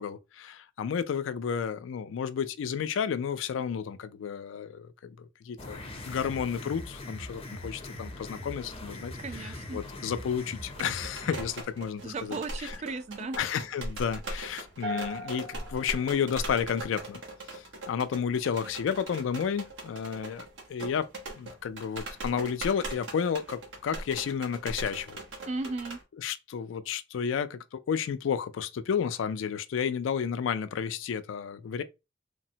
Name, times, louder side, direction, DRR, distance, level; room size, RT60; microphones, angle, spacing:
voice 1, 0.0-12.8 13.4-17.2 17.5-21.1 21.4-25.2 26.2-31.8, left 7 dB, 80° left, 0.3 m, -32 dB
sound 1, 5.6-11.6, left 1 dB, 30° left, 0.6 m, -41 dB
voice 2, 9.2-9.8 12.0-13.4 25.5-26.0, right 3 dB, 35° right, 0.3 m, -36 dB
sound 2, 10.7-26.0, right 2 dB, 80° right, 0.9 m, -41 dB
sound 3, 14.8-17.1, equal, 60° right, 1.2 m, -40 dB
3.2 x 2.0 x 2.7 m
head